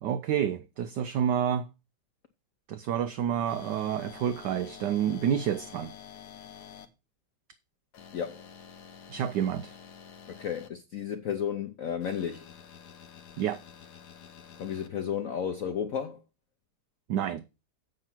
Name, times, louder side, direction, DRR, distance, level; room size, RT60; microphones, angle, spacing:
voice 1, 0.0-1.7 2.7-5.9 9.1-9.8 13.4-13.6 17.1-17.4, right 9 dB, 70° right, 1.0 m, -29 dB
sound 1, 3.5-6.9 7.9-10.7 12.0-14.9, left 8 dB, 55° left, 1.4 m, -49 dB
voice 2, 8.1-8.4 10.3-12.5 14.6-16.2, left 8 dB, 90° left, 0.7 m, -33 dB
7.9 x 5.8 x 6.0 m
omnidirectional pair, 2.4 m